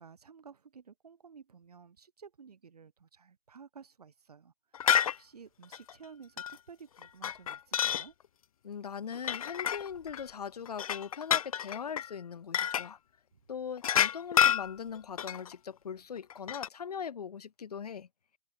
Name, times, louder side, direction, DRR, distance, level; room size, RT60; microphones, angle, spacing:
voice 1, 0.0-8.1 13.3-13.4, right 6 dB, 85° right, 3.5 m, -53 dB
sound 1, 4.7-5.2 5.7-5.9 6.4-6.5 7.0-8.1 9.2-10.2 10.7-12.1 12.5-12.9 13.8-15.5 16.3-16.7, left 9 dB, 65° left, 0.6 m, -29 dB
voice 2, 8.6-13.0 13.5-18.1, left 7 dB, 85° left, 1.1 m, -40 dB
hypercardioid pair, 165°, 19 cm